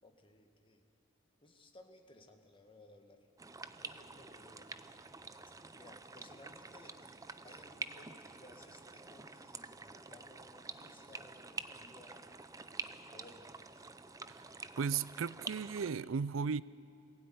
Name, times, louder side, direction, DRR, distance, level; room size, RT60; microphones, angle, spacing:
voice 1, 0.0-0.8 1.4-3.2 3.8-4.7 5.7-12.3 13.1-13.5 13.7-13.9, left 2 dB, 25° left, 4 dB, 1.9 m, -59 dB
sound 1, 3.4-15.9, right 4 dB, 15° right, 0.6 m, -48 dB
voice 2, 14.8-16.6, right 6 dB, 85° right, 19 dB, 0.5 m, -35 dB
23.0 x 16.5 x 9.5 m, 2.5 s
head